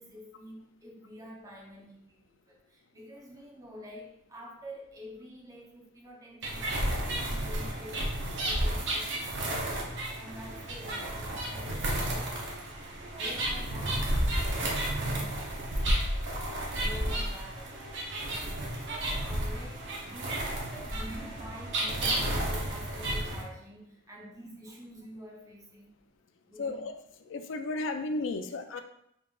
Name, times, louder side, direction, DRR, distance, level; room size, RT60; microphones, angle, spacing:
voice 1, 0.0-18.6 18.9-25.9 26.4-26.9, equal, 15° right, -2 dB, 0.8 m, -48 dB
sound 1, 6.4-23.4, right 1 dB, 65° right, 0.8 m, -32 dB
voice 2, 26.6-26.9 27.3-28.8, left 2 dB, 70° left, 7 dB, 0.4 m, -33 dB
3.8 x 3.6 x 2.4 m, 0.77 s
head